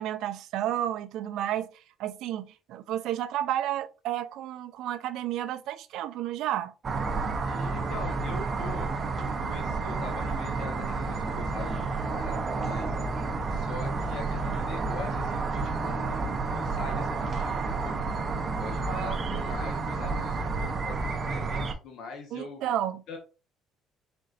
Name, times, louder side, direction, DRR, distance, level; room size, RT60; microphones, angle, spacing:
voice 1, 0.0-6.7 18.9-19.2 22.3-23.0, right 12 dB, 70° right, 0.5 m, -32 dB
sound 1, 6.8-21.7, right 4 dB, 30° right, 0.7 m, -30 dB
voice 2, 7.4-13.0 13.5-18.0 18.4-22.6 23.1-23.2, left 4 dB, 60° left, 1.1 m, -42 dB
4.3 x 3.9 x 2.5 m
cardioid pair, 125°, 0 cm